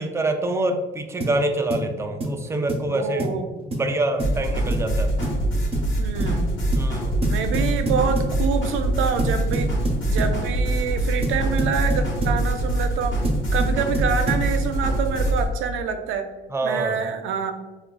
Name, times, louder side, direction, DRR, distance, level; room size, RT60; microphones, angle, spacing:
voice 1, 0.0-3.3 3.6-5.1 6.7-7.2 13.8-13.9 16.5-17.0, right 2 dB, 15° right, 5 dB, 0.4 m, -26 dB
sound 1, 1.2-1.4 1.7-1.9 2.2-2.4 2.7-2.9 3.2-3.4 3.7-3.9 4.2-4.4 4.7-4.9 5.2-5.4 5.7-5.9 6.2-6.4 6.7-6.9 7.2-8.4 9.2-10.4 11.2-12.4 13.2-14.5, right 1 dB, 30° right, 0.9 m, -27 dB
voice 2, 2.9-3.5 6.0-6.5 7.2-9.7 10.1-13.2 13.5-16.3 16.6-17.5, right 6 dB, 85° right, 6 dB, 0.4 m, -26 dB
sound 2, 4.2-15.5, right 1 dB, 75° left, 1.0 m, -24 dB
4.5 x 2.3 x 2.2 m, 1.2 s
cardioid pair, 90°, 20 cm